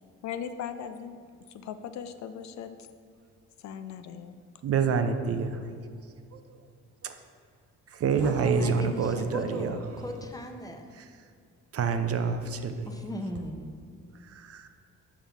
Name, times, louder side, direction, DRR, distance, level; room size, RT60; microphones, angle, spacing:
voice 1, 0.2-1.2 1.5-2.9 3.6-4.4, left 8 dB, 65° left, 10 dB, 0.5 m, -38 dB
voice 2, 4.6-5.6 6.3-6.4 7.0-7.1 7.9-9.8 10.9-11.1 11.7-12.9 14.3-14.7, right 5 dB, 50° right, 8 dB, 0.6 m, -27 dB
voice 3, 8.2-10.9 12.9-13.7, left 1 dB, 10° left, 3 dB, 0.7 m, -38 dB
7.3 x 5.5 x 3.5 m, 2.2 s
cardioid pair, 90°, 30 cm